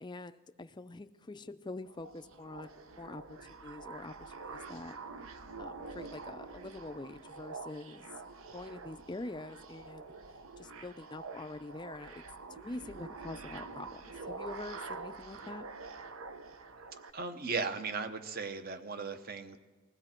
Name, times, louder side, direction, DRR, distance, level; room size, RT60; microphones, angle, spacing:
voice 1, 0.0-5.0 5.6-8.2 8.5-10.1 10.6-15.7, left 2 dB, 20° left, 11 dB, 0.4 m, -45 dB
sound 1, 1.8-17.1, right 4 dB, 75° right, 0.9 m, -46 dB
voice 2, 17.1-19.6, right 4 dB, 45° right, 9 dB, 0.9 m, -37 dB
20.0 x 16.0 x 4.4 m, 1.4 s
head